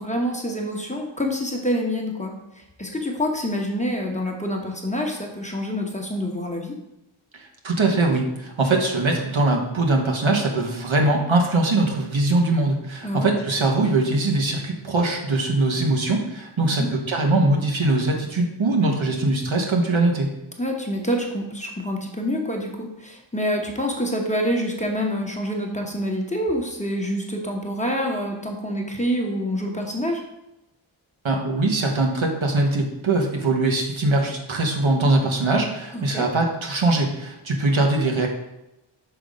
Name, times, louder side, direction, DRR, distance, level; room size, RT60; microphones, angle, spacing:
voice 1, 0.0-2.3 2.8-6.8 13.0-13.3 16.7-16.9 20.6-30.2 35.9-36.2, equal, 15° left, 1 dB, 1.1 m, -26 dB
voice 2, 7.6-20.3 31.2-38.3, right 2 dB, 75° right, 1 dB, 1.2 m, -22 dB
5.9 x 3.5 x 5.1 m, 0.89 s
wide cardioid pair, 55°, 48 cm